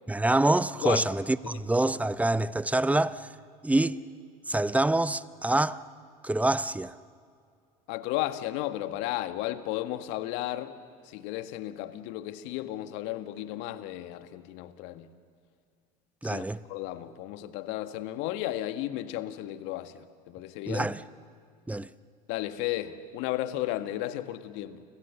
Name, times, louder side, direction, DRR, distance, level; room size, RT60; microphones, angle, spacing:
voice 1, 0.1-3.2 3.6-4.0 4.5-5.8 6.2-7.0 16.2-16.6 20.7-21.0 21.7-21.9, right 2 dB, 5° right, 0.8 m, -26 dB
voice 2, 7.9-10.8 11.0-15.1 16.2-16.4 16.7-20.9 22.3-24.8, left 14 dB, 60° left, 1.6 m, -34 dB
30.0 x 26.0 x 7.0 m
hypercardioid pair, 75°, 21 cm